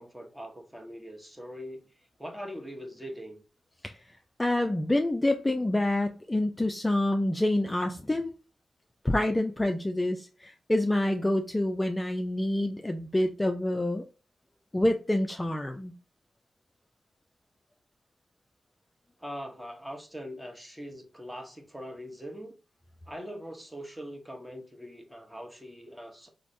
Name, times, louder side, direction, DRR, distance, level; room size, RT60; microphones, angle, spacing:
voice 1, 0.0-1.8 2.2-3.4 19.2-22.6 23.1-26.3, equal, 10° right, 0.9 m, -42 dB
voice 2, 4.4-8.3 9.0-14.0 14.7-15.9, left 1 dB, 20° left, 0.3 m, -27 dB
3.2 x 2.0 x 2.5 m
cardioid pair, 50°, 0 cm